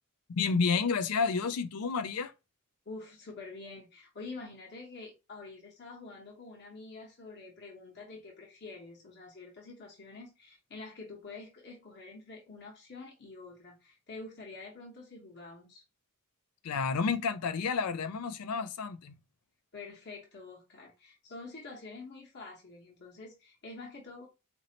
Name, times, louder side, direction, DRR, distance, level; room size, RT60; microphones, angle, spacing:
voice 1, 0.4-2.3 16.6-19.2, left 5 dB, 85° left, 0.5 m, -30 dB
voice 2, 2.9-15.8 19.7-24.3, left 3 dB, 50° left, 1.0 m, -47 dB
4.1 x 2.6 x 2.8 m
head